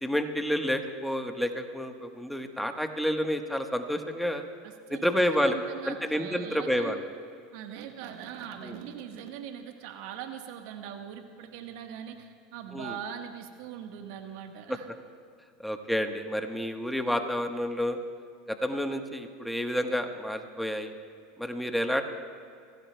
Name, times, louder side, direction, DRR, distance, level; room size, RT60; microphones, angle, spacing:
voice 1, 0.0-4.4 4.9-5.5 5.9-7.0 8.6-8.8 12.7-12.9 14.7-14.8 15.6-18.0 18.5-20.9 21.4-22.0, equal, ahead, 6 dB, 1.2 m, -29 dB
voice 2, 4.6-7.0 7.5-14.8, right 9 dB, 70° right, 5 dB, 1.3 m, -41 dB
25.5 x 16.5 x 2.2 m, 2.3 s
hypercardioid pair, 95°, 0 cm